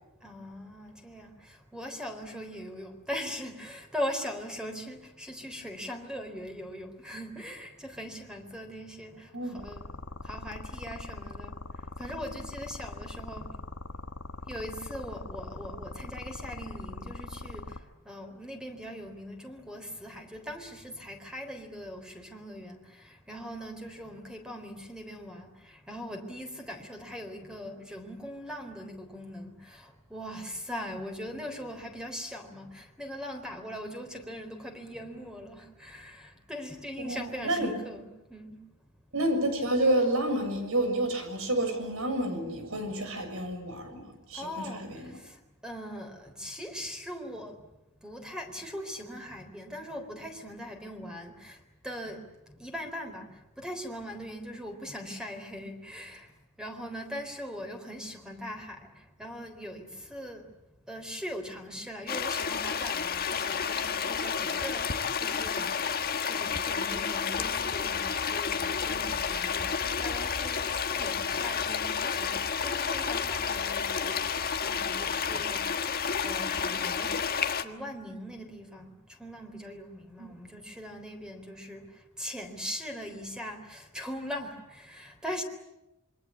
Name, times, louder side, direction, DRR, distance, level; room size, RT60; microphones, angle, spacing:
voice 1, 0.2-9.9 10.2-11.6 12.0-13.5 14.5-17.8 18.1-38.6 42.7-42.8 44.3-45.3 45.6-47.6 48.0-51.6 51.8-52.3 52.6-56.3 56.6-58.9 59.2-60.4 60.9-64.9 65.2-65.8 66.2-75.8 76.2-77.1 77.6-81.9 82.2-85.4, equal, 5° right, 5 dB, 3.8 m, -40 dB
sound 1, 9.6-17.8, left 2 dB, 85° left, 1.7 m, -41 dB
voice 2, 37.0-37.7 39.1-45.1 80.2-80.3, right 1 dB, 70° right, 7 dB, 7.0 m, -29 dB
sound 2, 62.1-77.6, left 6 dB, 45° left, 1.5 m, -30 dB
27.5 x 24.0 x 8.7 m, 0.93 s
head